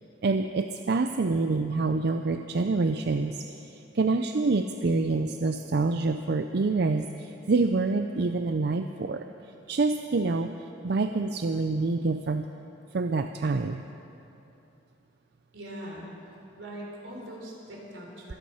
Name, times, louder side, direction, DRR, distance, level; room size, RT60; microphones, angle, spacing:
voice 1, 0.2-9.2 9.7-10.5 10.8-12.5 12.9-13.8, right 3 dB, 60° right, 7 dB, 0.5 m, -26 dB
voice 2, 15.5-16.1 16.6-18.3, equal, 85° right, -2 dB, 3.9 m, -41 dB
23.5 x 9.5 x 5.6 m, 2.9 s
head